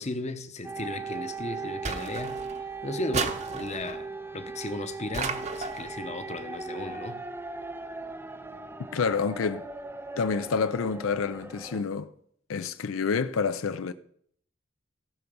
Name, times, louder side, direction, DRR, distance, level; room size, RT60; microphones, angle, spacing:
voice 1, 0.0-4.1 4.3-7.2, left 2 dB, 35° left, 0.9 m, -36 dB
sound 1, 0.6-11.8, right 3 dB, 10° right, 0.5 m, -38 dB
sound 2, 1.8-2.6 3.1-4.0 5.1-5.9, right 4 dB, 35° right, 0.8 m, -33 dB
voice 2, 8.9-9.7 10.2-12.1 12.5-13.9, left 5 dB, 80° left, 0.5 m, -28 dB
17.0 x 5.8 x 5.4 m
head